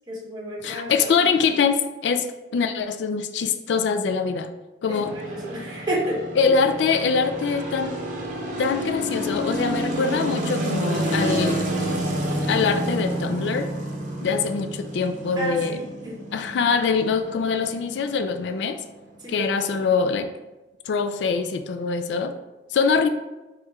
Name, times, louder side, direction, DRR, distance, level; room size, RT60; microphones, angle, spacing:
voice 1, 0.1-0.9 4.9-6.2 15.3-16.2 19.2-19.7, right 1 dB, 25° right, -3 dB, 1.1 m, -31 dB
voice 2, 0.6-4.5 4.8-5.1 6.4-8.0 8.6-11.6 12.4-13.7 14.2-15.8 16.3-18.8 19.3-20.3 20.9-22.3 22.7-23.1, left 5 dB, 75° left, 8 dB, 0.3 m, -23 dB
sound 1, 5.0-19.2, right 1 dB, 45° right, 0.8 m, -29 dB
4.5 x 2.4 x 4.3 m, 1.1 s
head